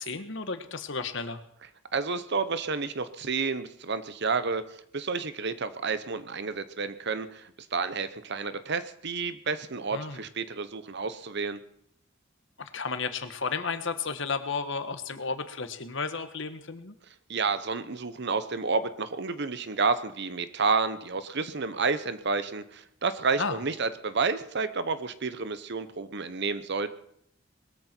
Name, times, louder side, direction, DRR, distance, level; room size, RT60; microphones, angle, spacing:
voice 1, 0.0-1.4 9.9-10.2 12.6-16.9 23.4-23.6, left 4 dB, 65° left, 9 dB, 1.5 m, -33 dB
voice 2, 1.9-4.6 4.9-11.6 17.3-26.9, right 4 dB, 60° right, 12 dB, 1.0 m, -30 dB
21.0 x 13.5 x 4.5 m, 0.72 s
head